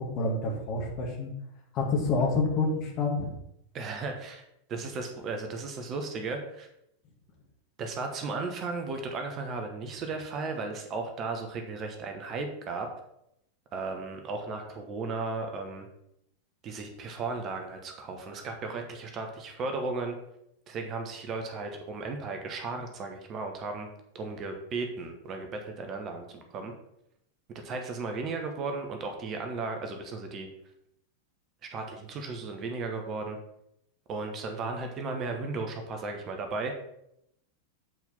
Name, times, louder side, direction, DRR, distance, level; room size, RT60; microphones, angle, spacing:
voice 1, 0.0-1.3 1.7-3.3, left 3 dB, 35° left, 1 dB, 2.0 m, -28 dB
voice 2, 3.7-4.4 4.7-6.7 7.8-12.9 13.7-15.9 16.6-20.2 20.7-23.9 24.1-26.7 27.6-30.5 31.6-33.4 34.1-36.7, right 3 dB, 30° right, 4 dB, 1.2 m, -35 dB
7.8 x 4.6 x 5.4 m, 0.79 s
figure-of-eight pair, 90°, 0 cm